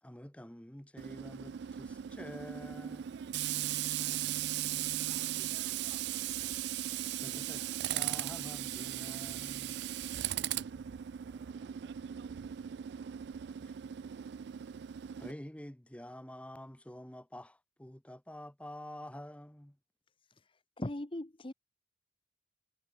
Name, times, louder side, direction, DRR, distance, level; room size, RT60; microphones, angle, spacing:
voice 1, 0.0-3.2 7.1-9.8 13.6-13.9 15.2-19.8, left 1 dB, 5° left, 0.9 m, -48 dB
Tools, 1.0-15.3, right 12 dB, 60° right, 0.3 m, -38 dB
voice 2, 10.4-12.9, equal, 15° right, 7.9 m, -68 dB
voice 3, 20.8-21.5, left 1 dB, 25° left, 1.0 m, -38 dB
head